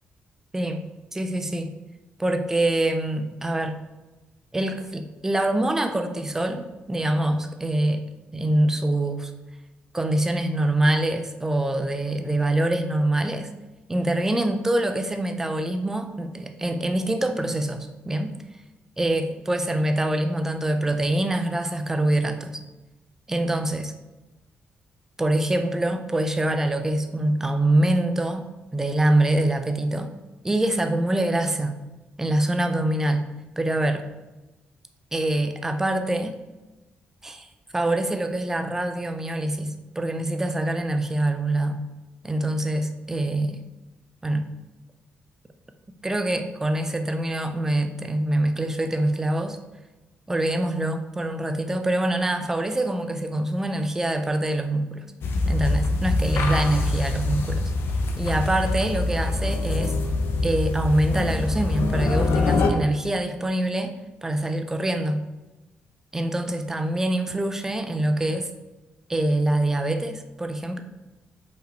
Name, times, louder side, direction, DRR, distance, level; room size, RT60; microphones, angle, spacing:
voice 1, 1.1-1.7 2.2-3.8 4.5-6.6 6.9-8.0 8.3-9.3 9.9-13.5 13.9-18.3 19.0-22.6 23.3-23.9 25.2-28.4 28.7-30.1 30.4-31.8 32.2-33.3 33.6-34.1 35.1-36.4 37.2-41.9 42.2-43.6 44.2-44.5 46.0-49.6 50.3-55.1 55.5-57.7 58.2-59.9 60.4-63.9 64.2-65.2 66.1-68.5 69.1-70.8, right 1 dB, 10° right, 7 dB, 0.5 m, -25 dB
sound 1, 55.2-62.7, left 3 dB, 70° left, 0.7 m, -24 dB
5.2 x 5.2 x 4.5 m, 1.1 s
wide cardioid pair, 170°, 4 cm